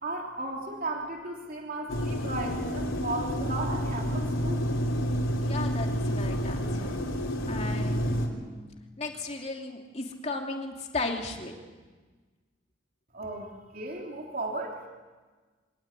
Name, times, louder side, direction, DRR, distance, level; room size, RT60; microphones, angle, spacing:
voice 1, 0.0-4.7 13.1-14.8, right 2 dB, 45° right, 0 dB, 3.3 m, -35 dB
sound 1, 1.9-8.3, equal, 85° left, 3.9 m, -29 dB
voice 2, 5.4-6.9 7.5-8.7 9.0-11.5, left 3 dB, 35° left, 2 dB, 2.8 m, -36 dB
25.0 x 18.5 x 9.0 m, 1.3 s
head